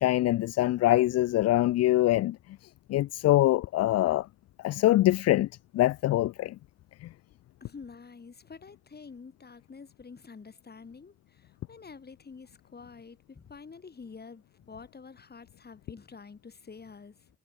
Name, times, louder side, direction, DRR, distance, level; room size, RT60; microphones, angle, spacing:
voice 1, 0.0-2.4 2.9-4.3 4.6-5.5 5.7-6.5 7.0-7.1, left 15 dB, 60° left, 0.4 m, -24 dB
voice 2, 7.6-17.3, left 5 dB, 30° left, 4.3 m, -48 dB
cardioid pair, 90°, 30 cm